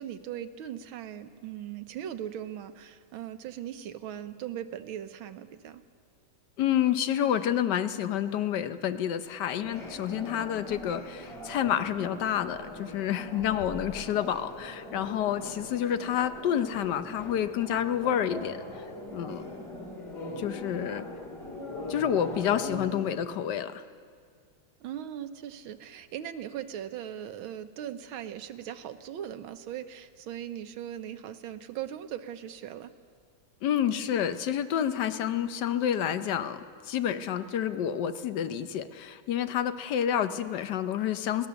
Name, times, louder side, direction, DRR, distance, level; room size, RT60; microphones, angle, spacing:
voice 1, 0.0-5.8 24.8-32.9, right 10 dB, 80° right, 10 dB, 1.6 m, -39 dB
voice 2, 6.6-18.6 19.1-19.4 20.4-21.0 21.9-23.8 33.6-41.5, left 9 dB, 65° left, 11 dB, 1.3 m, -29 dB
sound 1, 9.6-23.1, left 1 dB, 35° left, 2.7 m, -41 dB
21.0 x 18.0 x 7.0 m, 2.1 s
omnidirectional pair, 2.2 m